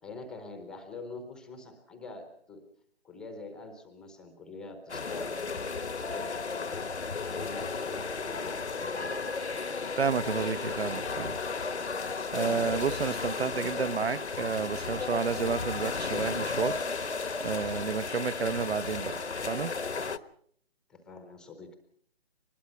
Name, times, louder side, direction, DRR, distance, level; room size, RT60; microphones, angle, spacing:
voice 1, 0.0-2.7 3.0-6.7 7.1-9.2 20.9-21.8, left 3 dB, ahead, 7 dB, 0.8 m, -45 dB
sound 1, 4.9-20.2, left 4 dB, 85° left, 1.3 m, -34 dB
voice 2, 10.0-11.4 12.3-16.8 17.4-19.7, right 5 dB, 70° right, 17 dB, 1.0 m, -31 dB
23.5 x 20.5 x 5.7 m, 0.65 s
figure-of-eight pair, 150°, 33 cm